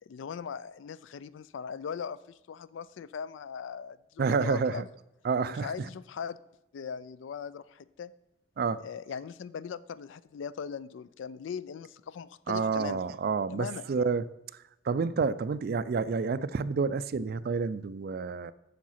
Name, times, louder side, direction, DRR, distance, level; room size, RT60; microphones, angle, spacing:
voice 1, 0.1-2.2 2.5-4.9 5.6-6.4 6.7-8.1 8.8-13.0 13.5-13.8, left 6 dB, 70° left, 17 dB, 0.3 m, -39 dB
voice 2, 4.2-4.8 5.2-5.9 8.6-8.8 12.5-14.2 14.8-18.5, right 5 dB, 50° right, 16 dB, 0.3 m, -29 dB
7.4 x 6.6 x 5.7 m, 0.90 s
head